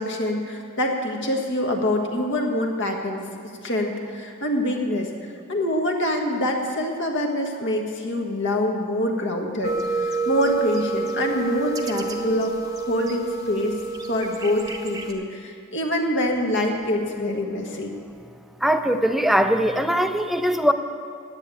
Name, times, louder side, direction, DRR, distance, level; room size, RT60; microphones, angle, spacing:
voice 1, 0.0-3.3 3.6-5.1 5.5-13.8 14.1-17.9, left 1 dB, 55° left, 2 dB, 1.5 m, -25 dB
sound 1, 9.6-15.1, right 4 dB, 15° right, 0.9 m, -29 dB
voice 2, 18.6-20.7, equal, ahead, 7 dB, 0.5 m, -21 dB
9.9 x 8.8 x 8.3 m, 2.3 s
head